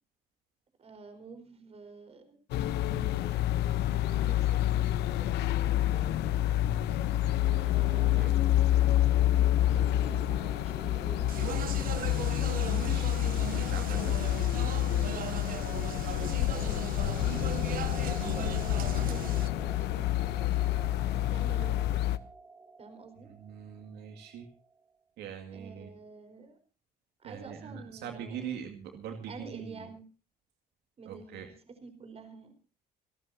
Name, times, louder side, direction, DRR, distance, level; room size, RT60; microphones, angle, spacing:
voice 1, 0.8-2.4 2.8-3.4 4.0-6.3 7.3-8.4 9.5-11.5 13.8-17.5 17.8-20.0 21.3-22.0 22.8-23.3 25.5-26.6 27.2-28.6 29.3-30.0 31.0-32.6, right 4 dB, 35° right, 7 dB, 4.7 m, -49 dB
sound 1, 2.5-22.2, left 13 dB, 85° left, 0.9 m, -28 dB
sound 2, 8.0-24.6, right 2 dB, 20° right, 2.4 m, -49 dB
Speech, 11.3-19.5, right 11 dB, 55° right, 0.9 m, -39 dB
voice 2, 12.7-13.2 13.5-14.2 23.3-24.5 25.2-25.9 27.2-29.9 31.1-31.5, right 8 dB, 80° right, 4 dB, 2.3 m, -42 dB
28.0 x 12.5 x 2.8 m, 0.35 s
cardioid pair, 110°, 17 cm